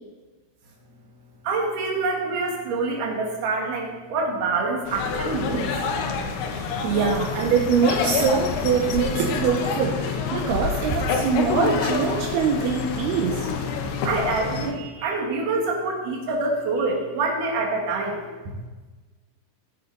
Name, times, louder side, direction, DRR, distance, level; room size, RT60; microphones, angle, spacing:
voice 1, 1.4-5.7 14.0-18.2, right 3 dB, 60° right, -1 dB, 3.2 m, -26 dB
sound 1, 4.9-14.7, left 5 dB, 80° left, 3.1 m, -27 dB
voice 2, 6.5-13.5, right 6 dB, 80° right, 0 dB, 2.9 m, -23 dB
15.0 x 8.9 x 4.0 m, 1.3 s
omnidirectional pair, 4.6 m